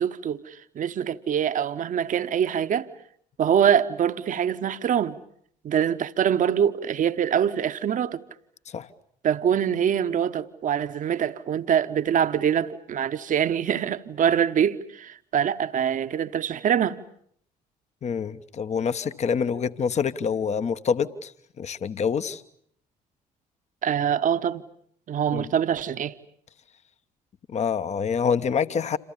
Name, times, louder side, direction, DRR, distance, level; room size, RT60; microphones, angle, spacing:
voice 1, 0.0-2.9 3.4-5.2 5.6-8.2 9.2-17.0 23.8-24.6 25.1-26.1, right 8 dB, 40° right, 1.2 m, -24 dB
voice 2, 18.0-21.3 21.6-22.4 25.3-25.5 27.5-29.0, left 6 dB, 35° left, 1.1 m, -26 dB
28.0 x 27.5 x 7.2 m
figure-of-eight pair, 50°, 20 cm